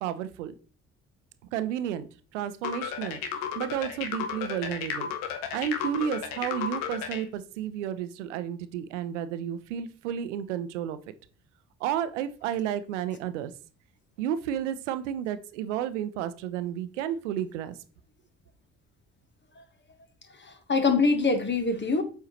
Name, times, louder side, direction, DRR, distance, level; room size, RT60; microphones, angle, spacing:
voice 1, 0.0-0.5 1.5-2.1 2.3-3.2 3.6-5.1 5.5-11.1 11.8-13.5 14.2-17.8, right 10 dB, 80° right, 0.6 m, -32 dB
sound 1, 2.6-7.2, left 8 dB, 70° left, 1.1 m, -33 dB
voice 2, 20.4-22.0, left 4 dB, 30° left, 1.5 m, -24 dB
8.1 x 4.4 x 3.1 m
hypercardioid pair, 45°, 35 cm